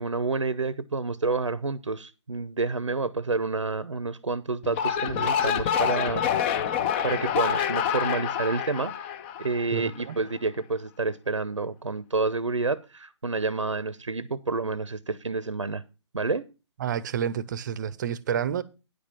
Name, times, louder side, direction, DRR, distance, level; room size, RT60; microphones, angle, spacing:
voice 1, 0.0-6.2 6.5-8.9 9.4-15.8 16.1-16.4, right 3 dB, 85° right, 0.7 m, -29 dB
sound 1, 4.6-10.0, left 8 dB, 25° left, 0.7 m, -27 dB
voice 2, 9.7-10.2 16.8-18.6, right 8 dB, 40° right, 0.7 m, -29 dB
9.8 x 5.2 x 6.8 m
figure-of-eight pair, 135°, 15 cm